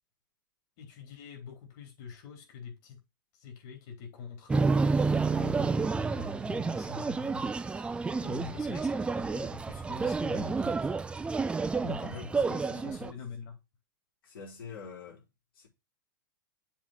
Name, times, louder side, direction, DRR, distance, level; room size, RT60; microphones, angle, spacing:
voice 1, 0.8-3.0 3.3-5.0 5.3-7.7 8.0-10.9 12.0-13.6, left 6 dB, 50° left, 3.7 m, -46 dB
sound 1, 4.5-13.1, right 4 dB, 10° right, 0.5 m, -30 dB
voice 2, 8.2-8.6 11.8-13.2 14.2-15.2 15.6-15.7, left 5 dB, 80° left, 4.1 m, -44 dB
7.2 x 3.7 x 5.8 m
hypercardioid pair, 125°, 11 cm